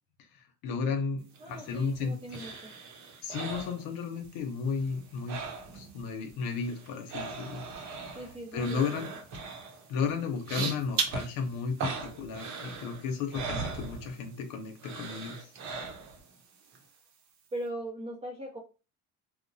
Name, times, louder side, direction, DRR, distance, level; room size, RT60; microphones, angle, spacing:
voice 1, 0.6-2.4 3.2-5.4 5.7-7.6 8.1-8.2 8.5-9.1 9.9-15.5, left 5 dB, 80° left, 4 dB, 0.7 m, -33 dB
voice 2, 1.4-2.7 8.1-9.0 13.5-13.7 17.5-18.6, right 1 dB, 20° right, -1 dB, 0.5 m, -40 dB
sound 1, 1.4-4.4 4.7-6.0 6.3-14.4 14.8-16.3 16.7-16.8, right 4 dB, 60° right, 0.8 m, -38 dB
2.9 x 2.1 x 2.6 m, 0.33 s
cardioid pair, 115°, 33 cm